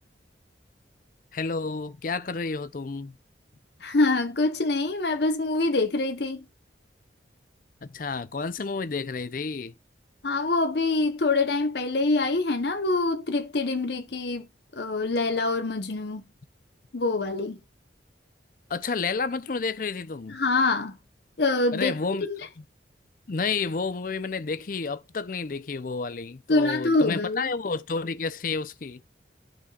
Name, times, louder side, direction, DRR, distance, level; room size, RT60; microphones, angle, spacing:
voice 1, 1.3-3.2 7.8-9.7 18.7-20.4 21.7-22.7 23.3-29.0, left 4 dB, 45° left, 0.5 m, -30 dB
voice 2, 3.8-6.4 10.2-14.5 14.8-16.2 16.9-17.6 20.3-21.0 21.4-21.9 22.3-22.4 26.5-27.5, left 3 dB, 65° left, 0.9 m, -25 dB
11.5 x 4.4 x 2.3 m
head